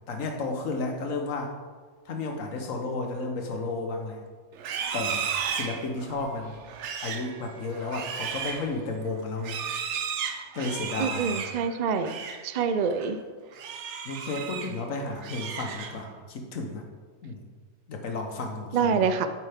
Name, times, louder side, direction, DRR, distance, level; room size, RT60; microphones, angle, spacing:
voice 1, 0.1-1.5 2.1-4.2 4.9-6.6 7.0-9.6 10.5-11.4 14.0-16.8 17.2-17.4 17.9-19.1, left 3 dB, 85° left, 4 dB, 1.4 m, -33 dB
Livestock farm animals working animals, 4.5-12.5 12.8-13.1 13.5-14.8 15.1-16.2, right 7 dB, 65° right, 0.9 m, -34 dB
voice 2, 11.0-12.2 12.4-13.2 18.7-19.3, right 6 dB, 90° right, 10 dB, 0.3 m, -26 dB
8.4 x 7.3 x 3.5 m, 1.5 s
omnidirectional pair, 1.3 m